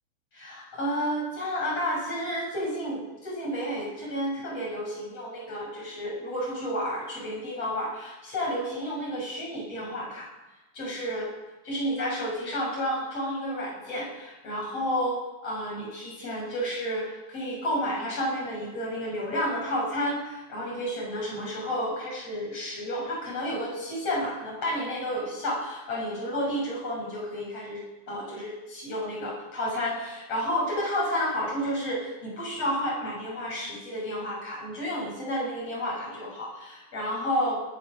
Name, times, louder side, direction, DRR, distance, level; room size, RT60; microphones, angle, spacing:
voice 1, 0.3-10.3 10.7-11.3 11.6-37.6, equal, 30° left, -3 dB, 7.4 m, -31 dB
19.0 x 12.5 x 6.3 m, 1.1 s
omnidirectional pair, 5.3 m